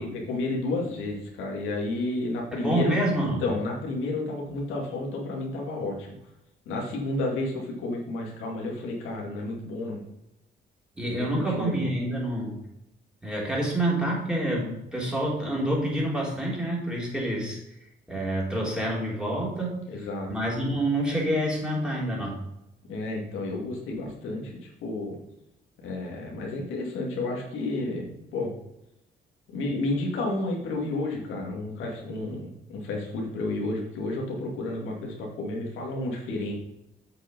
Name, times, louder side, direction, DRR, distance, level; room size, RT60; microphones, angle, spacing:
voice 1, 0.0-6.1 6.7-10.0 11.1-11.9 19.9-20.3 22.9-25.2 25.8-28.0 28.3-28.5 29.5-36.5, left 2 dB, 85° left, -1 dB, 2.5 m, -31 dB
voice 2, 2.5-3.4 11.0-12.6 13.2-17.6 18.1-22.4, right 1 dB, 5° right, -4 dB, 3.6 m, -27 dB
8.0 x 5.7 x 5.4 m, 0.86 s
cardioid pair, 90°, 20 cm